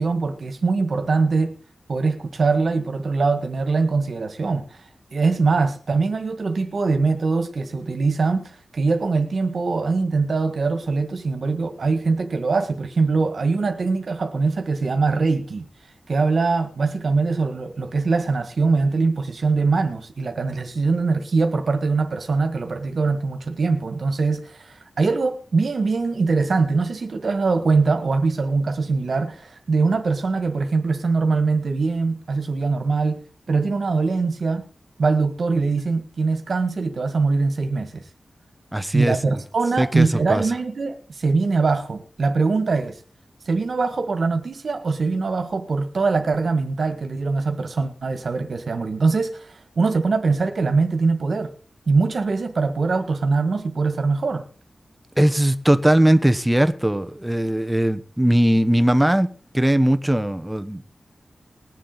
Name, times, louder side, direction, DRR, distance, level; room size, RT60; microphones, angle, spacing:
voice 1, 0.0-1.5 1.9-4.8 5.1-15.7 16.1-33.2 33.5-34.7 35.0-38.0 38.9-43.0 43.5-51.5 51.9-54.4, right 4 dB, 65° right, 1.7 m, -22 dB
voice 2, 38.7-39.2 39.8-40.4 55.2-59.3 59.5-60.8, right 1 dB, 10° right, 1.0 m, -19 dB
21.0 x 7.5 x 4.1 m
wide cardioid pair, 115°, 0 cm